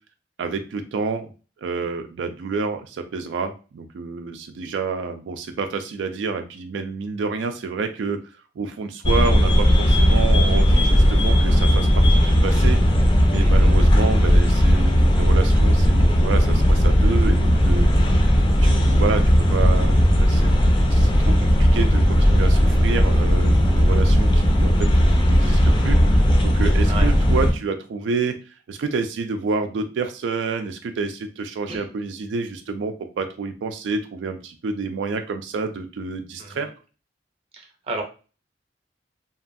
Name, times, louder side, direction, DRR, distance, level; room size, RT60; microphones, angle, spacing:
voice 1, 0.4-1.3 1.6-8.2 8.6-13.0 13.3-18.1 18.6-28.4 28.7-36.7, right 4 dB, 85° right, 6 dB, 0.3 m, -29 dB
sound 1, 9.0-27.5, equal, 25° left, 0.4 m, -16 dB
voice 2, 13.4-13.7 26.8-27.1 31.7-31.9 36.4-36.7 37.5-38.0, right 2 dB, 35° right, 2 dB, 0.6 m, -33 dB
2.8 x 2.3 x 2.5 m, 0.34 s
head